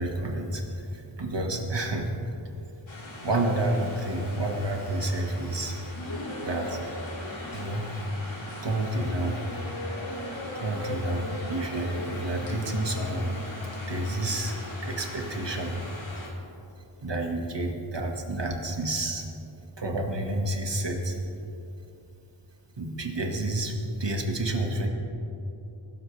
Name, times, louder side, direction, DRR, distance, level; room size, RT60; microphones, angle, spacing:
voice 1, 0.0-2.1 3.2-5.8 6.4-6.8 7.5-7.8 8.6-9.4 10.6-13.3 13.9-15.8 17.0-19.3 19.8-21.2 22.8-24.9, right 1 dB, 55° right, 2 dB, 2.0 m, -29 dB
sound 1, 2.9-16.3, left 1 dB, 65° left, 2.8 m, -38 dB
23.0 x 13.0 x 3.4 m, 2.8 s
wide cardioid pair, 55°, 50 cm